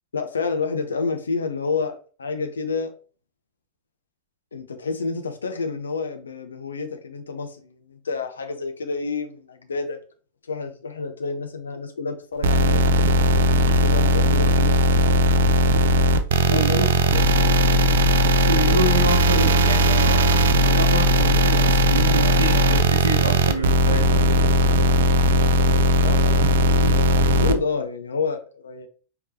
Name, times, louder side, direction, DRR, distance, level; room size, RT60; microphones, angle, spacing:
voice 1, 0.1-1.9 2.2-2.9 4.5-10.0 10.5-12.9 13.6-14.8 16.4-18.1 19.3-19.5 26.0-28.9, left 4 dB, 70° left, 0.7 m, -29 dB
sound 1, 12.4-27.5, equal, 60° right, 0.4 m, -18 dB
voice 2, 16.5-16.9 18.5-24.9, right 2 dB, 85° right, 0.8 m, -28 dB
4.7 x 3.5 x 2.8 m
figure-of-eight pair, 90°, 0 cm